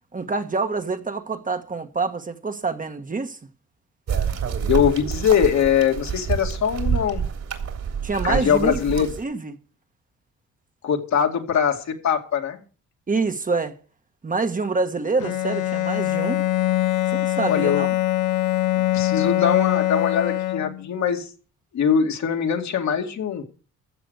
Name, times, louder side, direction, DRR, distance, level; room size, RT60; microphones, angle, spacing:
voice 1, 0.1-3.4 8.0-9.6 13.1-13.7 14.2-16.4 17.1-17.9, right 4 dB, 25° right, 1.4 m, -26 dB
sound 1, 4.1-9.2, right 7 dB, 60° right, 3.3 m, -27 dB
voice 2, 4.7-7.3 8.2-9.1 10.8-12.6 17.4-17.9 18.9-21.3 21.7-23.4, left 8 dB, 65° left, 2.4 m, -22 dB
Bowed string instrument, 15.2-21.0, left 15 dB, 85° left, 0.9 m, -23 dB
15.0 x 6.0 x 8.2 m
cardioid pair, 90°, 30 cm